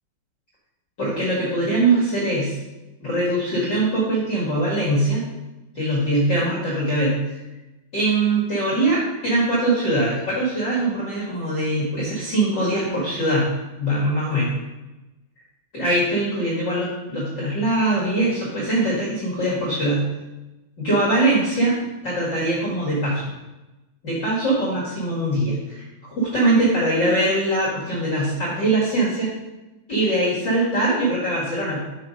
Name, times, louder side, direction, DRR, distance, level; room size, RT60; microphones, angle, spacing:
voice 1, 1.0-2.6 3.0-5.2 5.7-7.2 7.9-13.5 13.8-14.5 15.7-20.0 20.8-21.7 22.0-23.3 24.0-29.3 29.9-31.8, right 1 dB, 40° left, -8 dB, 1.7 m, -22 dB
7.4 x 5.1 x 5.3 m, 1.0 s
omnidirectional pair, 4.9 m